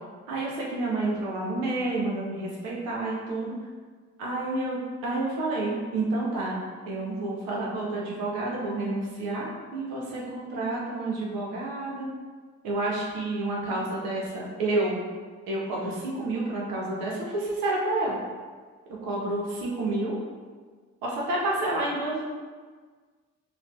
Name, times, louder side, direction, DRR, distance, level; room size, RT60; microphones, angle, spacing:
voice 1, 0.3-3.5 4.2-12.1 12.6-15.0 15.5-18.2 19.0-20.2 21.0-22.2, right 2 dB, 85° right, -4 dB, 1.0 m, -29 dB
5.8 x 2.5 x 3.1 m, 1.5 s
hypercardioid pair, 50°, 33 cm